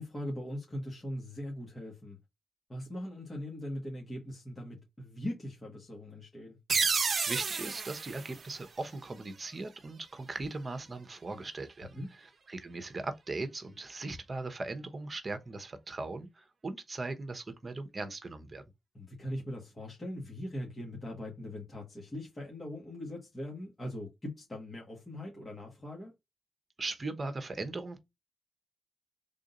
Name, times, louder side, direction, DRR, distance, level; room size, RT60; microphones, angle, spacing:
voice 1, 0.0-2.2 2.7-6.6 11.9-12.1 18.9-26.1, left 1 dB, 30° left, 1.7 m, -40 dB
sound 1, 6.7-9.3, right 5 dB, 55° right, 0.7 m, -32 dB
voice 2, 7.3-18.6 26.8-28.0, right 3 dB, 40° right, 1.0 m, -39 dB
3.7 x 2.7 x 3.8 m
supercardioid pair, 50°, 0 cm